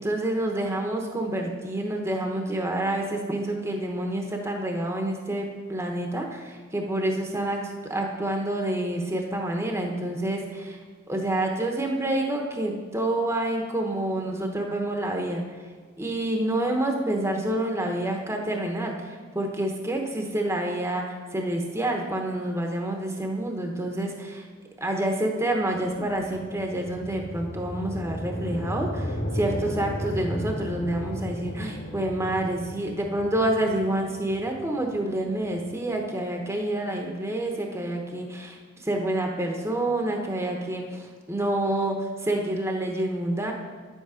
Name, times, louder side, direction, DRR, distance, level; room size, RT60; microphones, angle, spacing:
voice 1, 0.0-7.6 7.9-10.8 11.1-15.4 16.0-24.5 24.8-38.6 38.8-43.5, right 1 dB, 15° right, 2 dB, 0.9 m, -28 dB
sound 1, 25.7-36.0, equal, 55° left, 1.9 m, -35 dB
10.0 x 8.2 x 5.0 m, 1.5 s
head